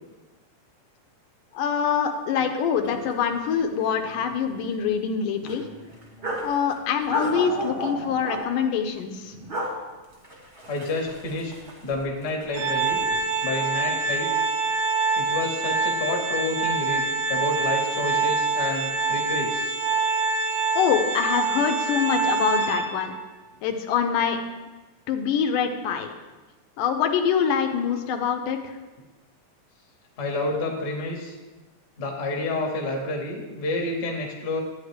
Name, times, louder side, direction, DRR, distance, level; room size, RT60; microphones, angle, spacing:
voice 1, 1.5-5.6 6.4-9.3 20.8-23.1 23.6-24.4 25.1-26.1 26.8-28.8, left 7 dB, 80° left, 5 dB, 2.2 m, -25 dB
sound 1, 2.8-2.9 3.2-3.3 3.8-4.5 4.8-4.9 5.4-6.5 7.1-8.4 9.3-9.7 10.1-12.1 12.4-13.2, right 1 dB, 30° right, 0.8 m, -33 dB
voice 2, 10.7-11.5 11.8-13.0 13.4-14.3 15.2-17.0 17.3-19.7 30.2-31.3 32.0-34.6, left 2 dB, 45° left, -1 dB, 1.4 m, -29 dB
Organ, 12.5-23.2, right 4 dB, 85° right, 2.3 m, -25 dB
12.0 x 8.6 x 3.3 m, 1.2 s
omnidirectional pair, 3.8 m